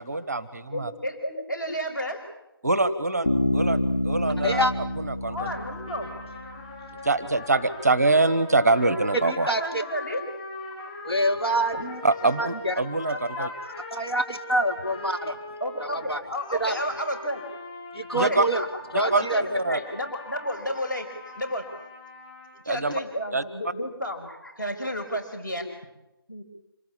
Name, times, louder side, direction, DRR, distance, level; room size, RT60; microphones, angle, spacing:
voice 1, 0.0-0.9 2.6-3.8 4.0-5.5 7.0-9.5 12.0-13.5 18.1-18.4 19.1-19.3 19.5-19.8 22.7-22.9 23.3-23.4, right 2 dB, 10° right, 15 dB, 0.8 m, -24 dB
voice 2, 0.7-2.2 5.3-6.1 9.4-10.3 10.7-11.0 15.6-17.4 18.2-18.7 18.9-21.7 22.5-25.7 26.3-26.4, equal, 55° left, 5 dB, 6.1 m, -32 dB
Bass guitar, 3.2-7.0, left 1 dB, 35° left, 3.4 m, -28 dB
sound 1, 5.4-22.5, left 2 dB, 15° left, 6.5 m, -41 dB
voice 3, 11.1-12.0 12.4-12.7 13.1-13.5 13.9-15.4 16.1-16.2 16.6-16.7 18.0-18.6 18.9-19.4, right 1 dB, 85° left, 5 dB, 2.3 m, -26 dB
26.5 x 19.0 x 8.7 m, 0.94 s
figure-of-eight pair, 165°, 13 cm